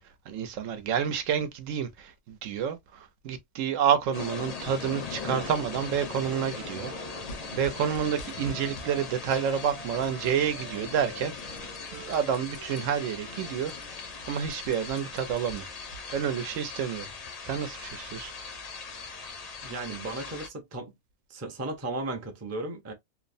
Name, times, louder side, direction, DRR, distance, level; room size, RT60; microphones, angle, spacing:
voice 1, 0.3-6.9 7.5-11.6 11.9-13.7 14.3-15.7 16.1-17.1 17.4-18.3, right 8 dB, 90° right, 1.0 m, -29 dB
sound 1, 4.1-20.5, left 4 dB, 50° left, 0.5 m, -40 dB
Wind instrument woodwind instrument, 5.3-9.1 9.4-13.5, right 6 dB, 60° right, 0.7 m, -49 dB
sound 2, 7.3-8.9 9.3-10.4 10.8-12.8 13.3-13.4 13.6-16.0, equal, 85° left, 1.0 m, -46 dB
voice 2, 19.6-20.9 21.3-22.9, right 2 dB, 25° right, 0.3 m, -35 dB
2.9 x 2.0 x 2.5 m
omnidirectional pair, 1.3 m